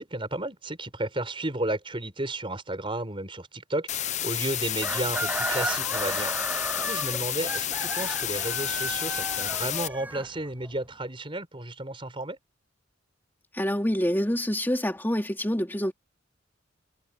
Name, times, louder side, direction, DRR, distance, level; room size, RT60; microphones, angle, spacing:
voice 1, 0.0-12.4, right 1 dB, 25° right, 5.0 m, -33 dB
sound 1, 3.9-9.9, left 11 dB, 35° left, 0.6 m, -30 dB
Chicken rooster, 4.8-10.7, right 2 dB, 10° right, 0.5 m, -34 dB
voice 2, 13.5-15.9, equal, 10° left, 2.4 m, -26 dB
head